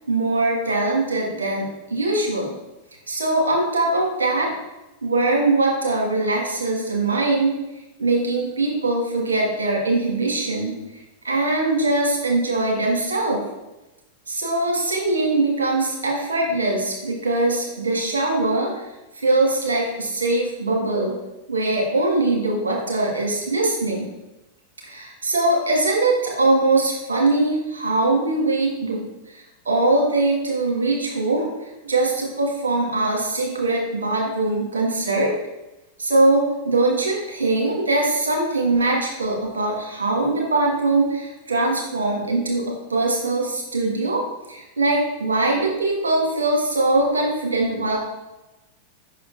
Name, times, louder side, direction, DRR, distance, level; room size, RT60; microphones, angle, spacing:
voice 1, 0.1-2.5 3.1-4.5 5.0-7.6 8.0-10.8 11.2-13.4 14.3-18.9 19.2-21.1 21.5-24.1 24.8-29.0 29.3-31.5 31.8-35.3 36.0-48.0, right 2 dB, 80° right, -2 dB, 1.7 m, -22 dB
5.9 x 4.3 x 4.0 m, 1.0 s
hypercardioid pair, 95°, 0 cm